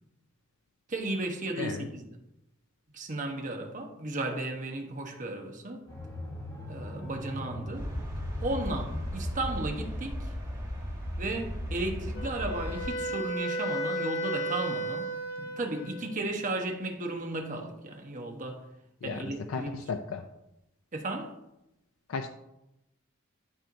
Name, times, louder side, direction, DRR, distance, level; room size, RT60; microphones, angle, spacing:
voice 1, 0.9-2.1 2.9-5.9 6.7-7.9 8.4-10.2 11.2-15.1 15.4-18.6 19.0-19.8 20.9-21.3, right 2 dB, 40° right, 1.0 m, -34 dB
voice 2, 1.6-1.9 19.0-20.3 22.1-22.3, left 4 dB, 80° left, 0.4 m, -35 dB
sound 1, 5.9-10.9, left 1 dB, 20° left, 2.6 m, -41 dB
sound 2, 7.7-12.9, equal, 20° right, 2.0 m, -36 dB
Wind instrument woodwind instrument, 12.1-16.2, right 1 dB, 60° left, 1.3 m, -34 dB
12.0 x 4.4 x 2.6 m
head